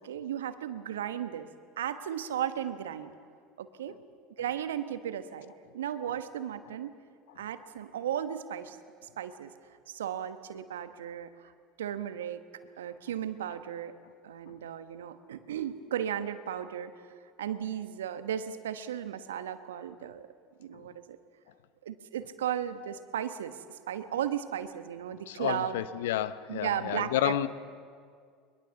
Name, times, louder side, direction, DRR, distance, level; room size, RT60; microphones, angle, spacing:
voice 1, 0.0-1.5 1.8-3.1 3.6-4.0 4.4-7.0 7.4-8.8 9.2-9.5 9.9-11.5 11.8-12.4 12.8-14.0 14.2-16.9 17.4-20.3 20.6-21.2 21.8-25.8 26.5-27.5, right 10 dB, 75° right, 11 dB, 1.2 m, -35 dB
voice 2, 25.3-27.5, left 12 dB, 70° left, 15 dB, 0.8 m, -30 dB
22.5 x 22.0 x 7.2 m, 2.1 s
hypercardioid pair, 70°, 0 cm